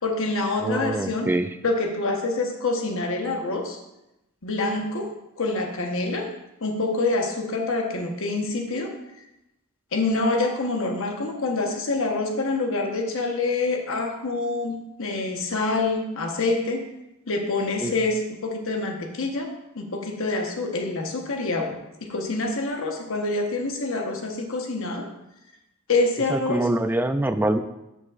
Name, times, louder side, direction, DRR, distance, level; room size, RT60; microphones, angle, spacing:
voice 1, 0.0-1.3 1.6-3.8 4.4-6.3 6.6-8.9 9.9-16.8 17.3-25.1 25.9-26.7, left 3 dB, 65° left, 3 dB, 1.1 m, -26 dB
voice 2, 0.6-1.5 17.8-18.0 26.3-27.6, right 1 dB, 10° right, 9 dB, 0.3 m, -24 dB
12.5 x 5.3 x 2.5 m, 0.90 s
head